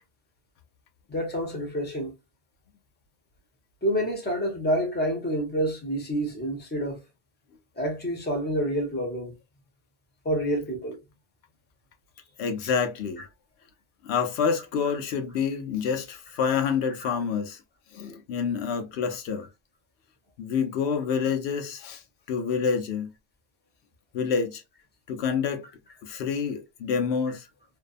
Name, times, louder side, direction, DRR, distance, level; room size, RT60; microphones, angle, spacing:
voice 1, 1.1-2.1 3.8-7.0 7.8-9.3 10.2-11.0 17.0-17.1, equal, 10° left, 0.7 m, -28 dB
voice 2, 12.4-13.2 14.0-17.6 17.9-19.5 20.4-22.0 22.3-23.1 24.1-24.6 25.1-25.6 26.0-27.5, left 6 dB, 80° left, 0.9 m, -27 dB
2.6 x 2.2 x 2.4 m
omnidirectional pair, 1.1 m